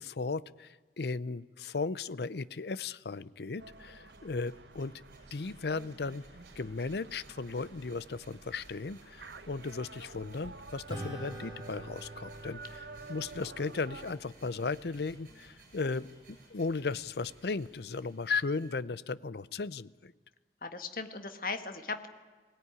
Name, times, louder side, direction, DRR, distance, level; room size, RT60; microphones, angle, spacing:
voice 1, 0.0-4.9 5.3-6.2 6.6-20.1, left 4 dB, 65° left, 18 dB, 0.6 m, -36 dB
sound 1, 3.6-14.1, right 3 dB, 80° right, 1.2 m, -50 dB
sound 2, 3.7-18.7, right 2 dB, 50° right, 7.6 m, -60 dB
Acoustic guitar / Strum, 10.9-15.7, right 1 dB, 25° right, 5.2 m, -47 dB
voice 2, 20.6-22.1, left 4 dB, 50° left, 8 dB, 1.6 m, -37 dB
22.0 x 17.5 x 9.8 m, 1.4 s
head